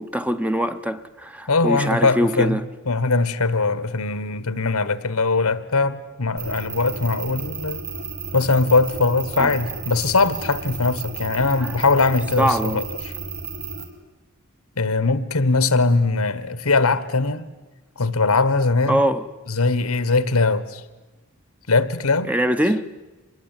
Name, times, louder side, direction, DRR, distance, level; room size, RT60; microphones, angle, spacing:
voice 1, 0.0-2.6 9.4-9.5 11.6-11.8 12.4-12.8 18.9-19.3 22.3-22.9, equal, 5° right, 0.8 m, -23 dB
voice 2, 1.5-2.6 2.9-7.8 8.3-13.1 14.8-17.5 18.0-19.0 19.5-20.8 21.7-22.3, left 3 dB, 85° left, 1.3 m, -21 dB
sound 1, 6.4-13.8, right 5 dB, 75° right, 4.3 m, -33 dB
25.0 x 21.0 x 9.2 m
head